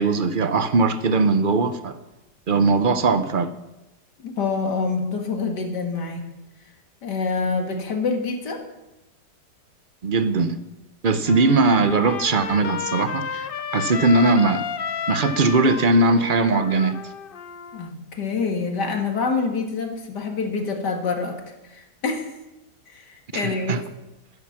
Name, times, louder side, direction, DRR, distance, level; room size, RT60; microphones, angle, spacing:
voice 1, 0.0-2.0 2.5-3.5 10.0-10.6 11.0-13.5 13.7-14.6 15.1-17.0 23.3-23.8, right 3 dB, 45° right, 0.7 m, -20 dB
voice 2, 4.2-6.2 7.0-8.6 17.7-21.4 21.7-22.3 22.9-23.8, left 4 dB, 80° left, 2.6 m, -26 dB
Trumpet, 11.3-17.9, left 7 dB, 60° left, 0.5 m, -32 dB
14.0 x 13.5 x 5.9 m
omnidirectional pair, 1.8 m